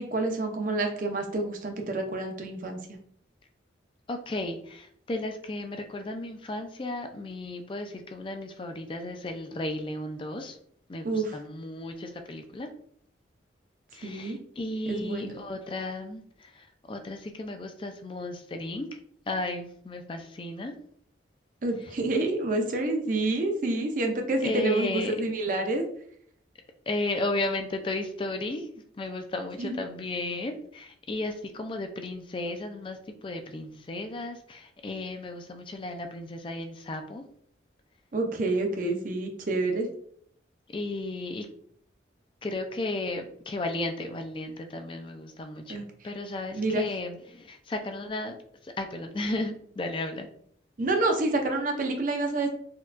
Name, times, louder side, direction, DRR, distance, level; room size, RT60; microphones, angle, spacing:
voice 1, 0.0-3.0 11.0-11.3 14.0-14.4 14.9-15.3 21.6-25.8 29.6-29.7 38.1-39.9 45.7-45.8 46.5-46.8 50.8-52.5, right 2 dB, 45° right, 4 dB, 0.5 m, -28 dB
voice 2, 4.1-10.6 10.9-12.7 13.9-19.0 19.3-20.7 24.4-25.1 26.9-28.7 29.0-37.2 40.7-41.5 42.4-45.8 46.0-48.4 48.6-50.3, left 2 dB, 25° left, 6 dB, 0.3 m, -34 dB
4.3 x 2.3 x 2.4 m, 0.64 s
head